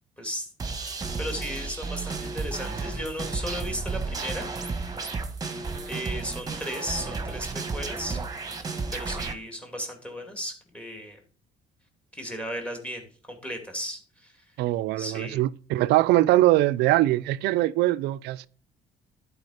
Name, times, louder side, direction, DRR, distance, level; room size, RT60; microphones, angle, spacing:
voice 1, 0.2-0.5 0.7-4.5 5.9-8.2 8.9-11.2 12.1-14.4 15.0-15.4, equal, 5° left, 2.4 m, -35 dB
sound 1, 0.6-9.3, right 4 dB, 20° right, 1.3 m, -33 dB
voice 2, 14.6-18.5, right 16 dB, 80° right, 0.5 m, -22 dB
11.0 x 5.0 x 4.9 m
cardioid pair, 110°, 17 cm